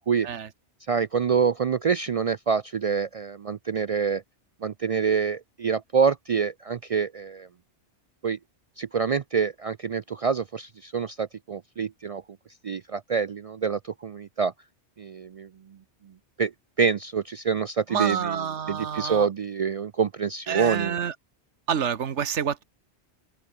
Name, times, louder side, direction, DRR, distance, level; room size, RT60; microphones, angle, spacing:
voice 1, 0.9-4.2 4.6-7.5 8.2-8.4 8.8-12.2 12.6-14.5 15.0-15.5 16.4-16.5 16.8-18.4 18.7-21.0, right 6 dB, 65° right, 0.3 m, -26 dB
voice 2, 17.9-19.3 20.5-21.1 21.7-22.6, right 7 dB, 80° right, 1.5 m, -28 dB
open air
omnidirectional pair, 1.2 m